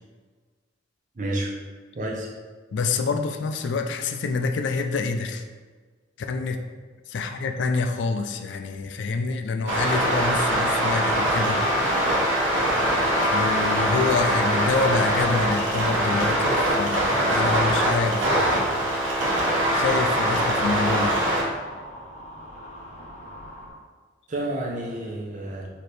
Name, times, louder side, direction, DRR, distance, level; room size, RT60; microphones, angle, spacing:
voice 1, 1.2-1.5 1.9-2.3 24.3-25.7, right 1 dB, 40° right, -2 dB, 0.6 m, -30 dB
voice 2, 2.7-5.4 6.2-6.6 7.1-11.6 13.3-18.8 19.7-21.1, left 4 dB, 70° left, 5 dB, 0.3 m, -27 dB
sound 1, 9.7-21.4, right 1 dB, 85° right, 1.0 m, -23 dB
sound 2, 15.1-23.7, equal, 35° left, 0.9 m, -43 dB
4.2 x 2.8 x 3.2 m, 1.4 s
head